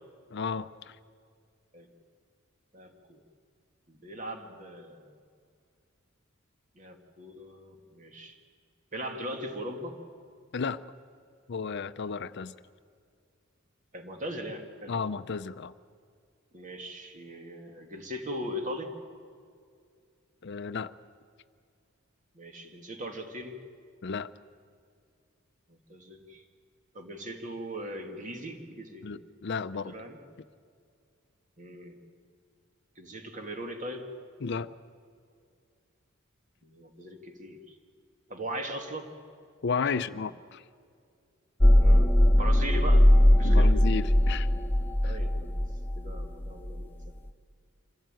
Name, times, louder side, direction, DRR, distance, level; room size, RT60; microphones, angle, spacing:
voice 1, 0.3-1.0 10.5-10.8 11.5-12.5 14.9-15.7 20.4-20.9 24.0-24.3 29.0-29.9 34.4-34.7 39.6-40.6 43.4-44.5 45.0-45.2, left 5 dB, 55° left, 14 dB, 0.5 m, -33 dB
voice 2, 2.7-3.2 3.9-5.1 6.8-8.4 8.9-10.0 13.9-14.9 16.5-18.9 22.3-23.6 25.7-26.4 26.9-29.2 29.9-30.2 31.6-32.0 33.0-34.1 36.6-37.7 38.3-39.1 39.9-40.0 41.7-43.1 43.4-43.7 45.0-45.6 46.0-47.0, equal, 40° right, 4 dB, 2.3 m, -39 dB
sound 1, 41.6-47.1, left 1 dB, 10° left, 0.7 m, -20 dB
25.5 x 16.0 x 9.1 m, 2.3 s
head